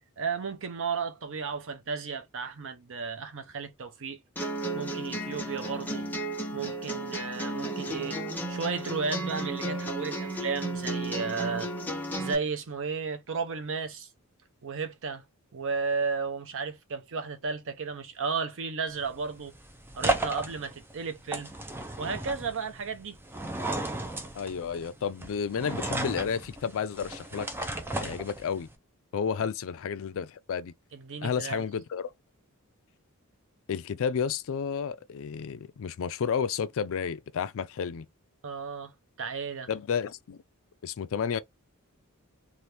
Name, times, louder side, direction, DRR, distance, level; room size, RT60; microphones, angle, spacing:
voice 1, 0.2-4.2 4.7-6.1 6.5-8.2 8.5-11.7 12.2-14.1 14.6-15.2 15.5-19.5 19.9-21.5 22.0-23.2 30.9-31.6 38.4-38.9 39.2-39.7, right 5 dB, 60° right, 0.7 m, -33 dB
sound 1, 4.4-12.3, right 1 dB, 10° left, 1.0 m, -34 dB
sound 2, 18.9-28.7, right 1 dB, 10° right, 0.5 m, -35 dB
voice 2, 24.3-27.5 28.0-28.7 29.1-30.7 31.2-32.1 33.7-38.1 39.7-40.4 40.8-41.4, left 7 dB, 65° left, 0.4 m, -31 dB
2.8 x 2.5 x 3.3 m
head